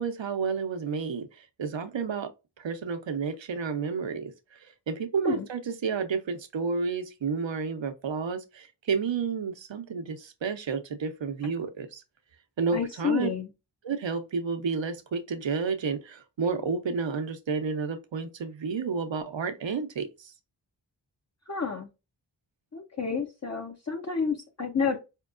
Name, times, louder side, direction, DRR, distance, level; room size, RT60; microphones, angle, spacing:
voice 1, 0.0-2.3 2.6-4.6 4.9-12.0 12.6-13.3 13.8-20.3, right 5 dB, 85° right, 0.7 m, -31 dB
voice 2, 12.7-13.5 21.5-21.9 22.7-25.0, left 5 dB, 35° left, 0.7 m, -30 dB
4.5 x 2.9 x 2.4 m
wide cardioid pair, 55°, 44 cm